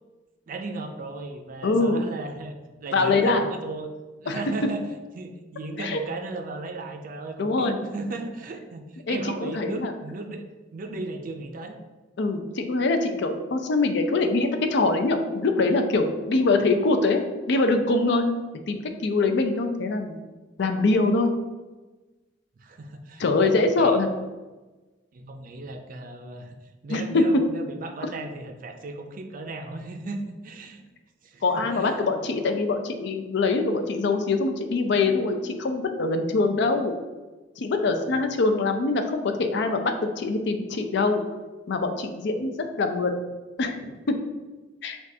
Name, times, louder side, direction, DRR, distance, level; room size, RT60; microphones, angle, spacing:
voice 1, 0.5-3.9 4.2-4.9 5.2-10.5 10.7-11.8 22.6-23.5 23.8-24.0 25.1-26.6 26.8-30.8 31.2-32.0, right 2 dB, 45° right, 5 dB, 0.4 m, -36 dB
voice 2, 1.6-2.0 2.9-3.4 4.3-4.4 5.8-6.0 7.4-7.8 9.1-9.9 12.2-17.2 17.5-18.3 18.7-20.2 20.6-21.3 23.2-24.1 26.9-27.4 31.4-37.0 37.6-41.2 41.7-42.5 42.8-43.1 43.6-44.2 44.8-45.0, left 3 dB, 65° left, 6 dB, 0.4 m, -23 dB
6.1 x 2.4 x 2.7 m, 1.2 s
head